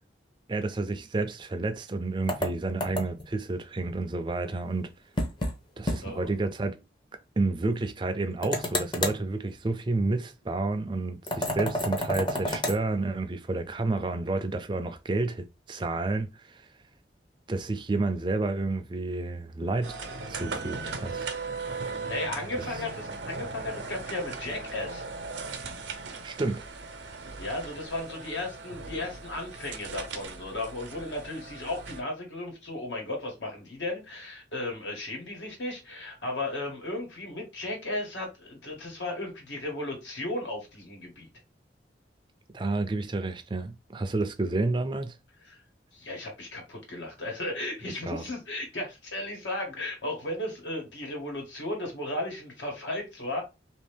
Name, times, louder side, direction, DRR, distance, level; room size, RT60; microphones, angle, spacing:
voice 1, 0.5-4.9 5.8-6.8 7.4-16.6 17.5-20.0 20.3-21.3 26.2-26.6 42.5-45.2 48.1-48.2, right 2 dB, 25° right, 0.4 m, -30 dB
sound 1, 2.3-3.3 5.2-5.6 5.9-6.0 6.3-6.4 8.4-9.2 11.3-12.8, left 1 dB, 25° left, 0.6 m, -30 dB
sound 2, 19.8-32.0, right 4 dB, 80° right, 0.6 m, -38 dB
voice 2, 22.1-25.0 27.4-41.3 45.5-45.6 45.9-53.4, left 2 dB, 85° left, 1.4 m, -35 dB
2.8 x 2.6 x 3.4 m
head